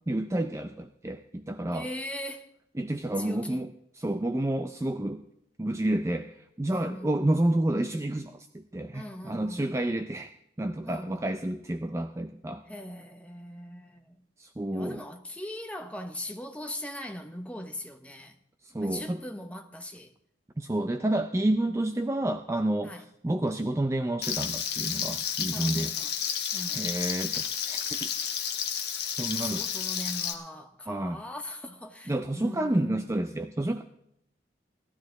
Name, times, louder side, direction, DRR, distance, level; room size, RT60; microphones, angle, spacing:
voice 1, 0.1-1.9 2.7-5.2 5.6-12.6 14.4-15.0 18.6-19.2 20.6-25.9 26.7-28.1 29.2-29.6 30.9-31.2 32.1-33.8, right 1 dB, 15° right, 0.4 m, -30 dB
voice 2, 1.7-2.5 3.2-3.6 6.7-7.3 8.9-9.8 10.8-11.3 12.7-14.1 14.7-18.3 18.8-20.1 21.7-21.8 22.8-23.0 25.5-26.1 26.5-26.8 29.4-33.0, left 1 dB, 5° left, 0.9 m, -40 dB
Frying (food), 24.2-30.3, left 8 dB, 55° left, 1.2 m, -31 dB
17.5 x 12.5 x 3.9 m
head